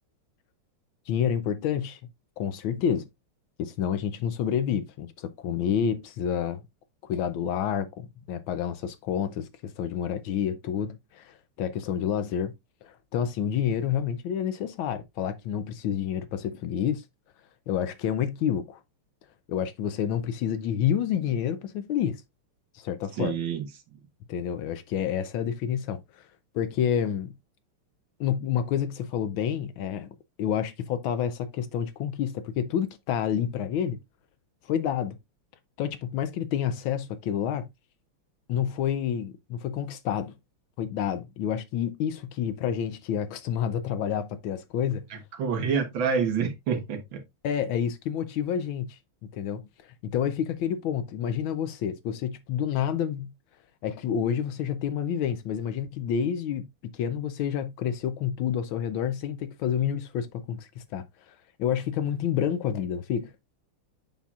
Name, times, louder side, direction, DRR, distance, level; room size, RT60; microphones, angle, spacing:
voice 1, 1.1-2.0 2.4-3.1 3.6-6.6 7.0-12.5 12.8-17.0 17.7-18.8 19.5-22.2 22.7-23.4 24.3-26.3 26.5-27.3 28.2-30.1 30.4-34.0 34.7-35.2 35.8-37.7 38.5-40.4 40.8-45.1 47.4-49.0 49.3-53.3 53.8-63.3, left 9 dB, 75° left, 1.3 m, -29 dB
voice 2, 23.2-23.6 45.4-47.2, right 6 dB, 65° right, 1.8 m, -27 dB
7.2 x 5.7 x 2.4 m
omnidirectional pair, 2.4 m